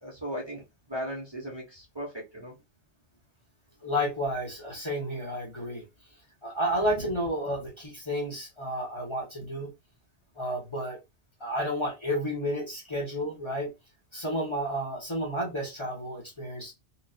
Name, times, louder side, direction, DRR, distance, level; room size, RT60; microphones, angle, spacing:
voice 1, 0.0-2.5, equal, 25° right, 1.1 m, -37 dB
voice 2, 3.8-5.8 6.4-9.7 10.4-11.0 11.4-13.7 14.1-16.7, equal, 25° left, 1.2 m, -31 dB
4.3 x 2.5 x 2.5 m
omnidirectional pair, 1.2 m